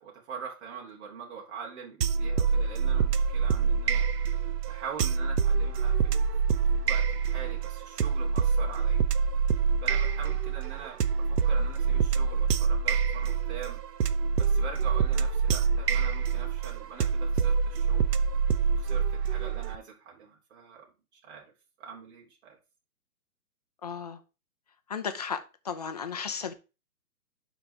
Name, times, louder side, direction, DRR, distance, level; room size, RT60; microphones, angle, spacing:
voice 1, 0.0-4.0 4.7-9.0 9.8-13.8 14.4-18.1 18.7-20.8 21.1-21.4 21.8-22.6, right 6 dB, 45° right, 3.0 m, -43 dB
sound 1, 2.0-19.8, right 6 dB, 85° right, 0.8 m, -26 dB
voice 2, 23.8-24.2 24.9-25.4 25.6-26.5, left 6 dB, 25° left, 0.5 m, -34 dB
11.5 x 4.0 x 3.4 m
hypercardioid pair, 150°, 47 cm